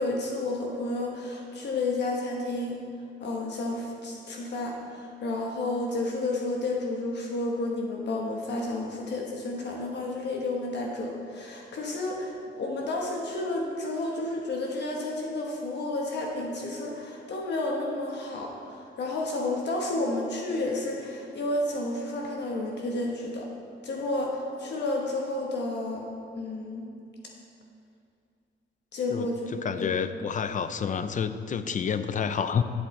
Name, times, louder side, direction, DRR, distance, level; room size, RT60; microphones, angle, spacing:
voice 1, 0.0-2.8 3.2-23.5 23.8-26.1 26.4-26.9 28.9-29.5 29.8-29.9, left 2 dB, 60° left, -1 dB, 1.1 m, -31 dB
voice 2, 29.1-32.6, left 7 dB, 40° left, 11 dB, 0.5 m, -29 dB
12.0 x 8.0 x 3.2 m, 2.4 s
cardioid pair, 90°, 20 cm